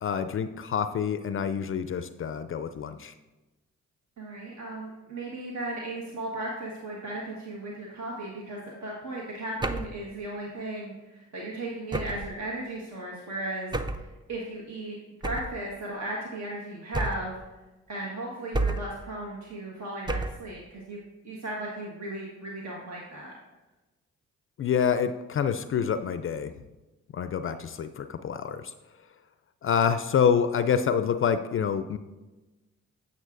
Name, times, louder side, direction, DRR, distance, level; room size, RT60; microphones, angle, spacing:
voice 1, 0.0-3.1 24.6-26.5 27.1-28.7 29.6-32.0, left 7 dB, 45° left, 11 dB, 0.4 m, -27 dB
voice 2, 4.2-17.4 17.9-21.0 21.2-23.3, right 1 dB, 60° right, -3 dB, 1.4 m, -36 dB
sound 1, 9.6-10.0 11.9-12.4 13.7-14.1 15.2-15.6 16.9-17.4 18.5-19.0 20.1-20.5, right 2 dB, 15° right, 0.5 m, -30 dB
9.2 x 7.3 x 2.5 m, 1.1 s
supercardioid pair, 55°, 31 cm